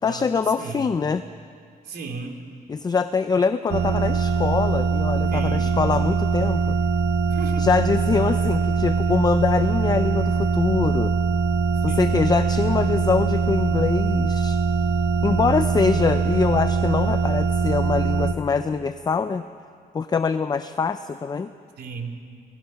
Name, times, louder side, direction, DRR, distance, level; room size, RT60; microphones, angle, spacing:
voice 1, 0.0-1.2 2.7-6.8 7.6-11.1 11.8-14.6 15.2-19.4 19.9-21.5, left 5 dB, 25° left, 10 dB, 0.5 m, -24 dB
voice 2, 0.6-1.0 1.8-2.4 5.3-5.7 7.3-7.7 11.9-12.2 21.8-22.2, right 4 dB, 75° right, 3 dB, 3.2 m, -35 dB
sound 1, 3.7-18.3, right 5 dB, 90° right, 1.1 m, -22 dB
30.0 x 18.5 x 5.8 m, 2.2 s
cardioid pair, 145°, 16 cm